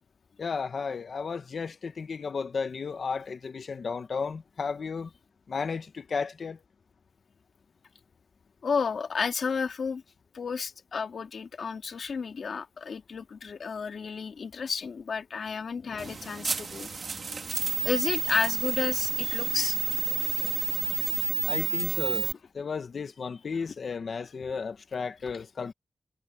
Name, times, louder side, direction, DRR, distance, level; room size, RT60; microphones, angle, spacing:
voice 1, 0.4-5.1 5.5-6.6 21.4-22.3 22.5-25.7, left 5 dB, 70° left, 1.2 m, -33 dB
voice 2, 8.6-10.0 10.3-16.9 17.8-19.8, left 5 dB, 85° left, 2.3 m, -31 dB
sound 1, 16.0-22.3, right 5 dB, 60° right, 1.5 m, -30 dB
wide cardioid pair, 150°, 0 cm